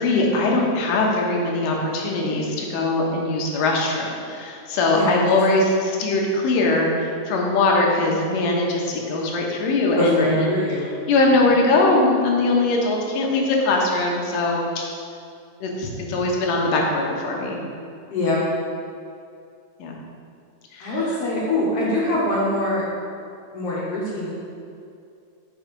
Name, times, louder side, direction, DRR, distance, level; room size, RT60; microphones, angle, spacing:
voice 1, 0.0-15.0 15.6-17.6 19.8-19.9 20.7-21.2, left 2 dB, 85° left, -1 dB, 2.6 m, -21 dB
voice 2, 9.9-11.0 18.1-18.4 20.8-22.8 23.5-24.3, left 1 dB, 60° left, -6 dB, 1.7 m, -23 dB
6.1 x 4.7 x 5.2 m, 2.5 s
omnidirectional pair, 3.7 m